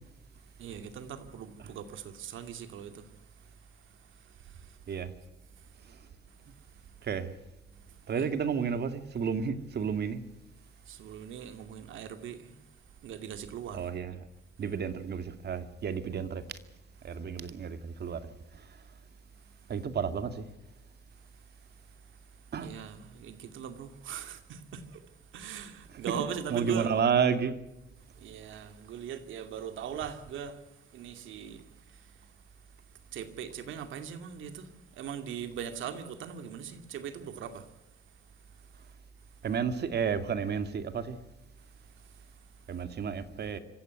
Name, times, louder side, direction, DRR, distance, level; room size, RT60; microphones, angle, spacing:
voice 1, 0.6-3.1 3.9-5.0 5.5-5.8 6.3-6.5 7.7-8.4 10.8-12.6 13.0-13.9 22.5-27.0 28.1-30.6 30.9-32.1 33.1-37.7, right 8 dB, 80° right, 2.5 m, -41 dB
voice 2, 8.1-10.2 13.7-14.2 14.6-16.4 17.0-18.2 19.7-20.5 22.5-22.7 25.9-26.0 26.5-27.6 39.4-41.2 42.7-43.6, right 6 dB, 55° right, 2.4 m, -31 dB
26.0 x 15.5 x 9.5 m
cardioid pair, 90°, 20 cm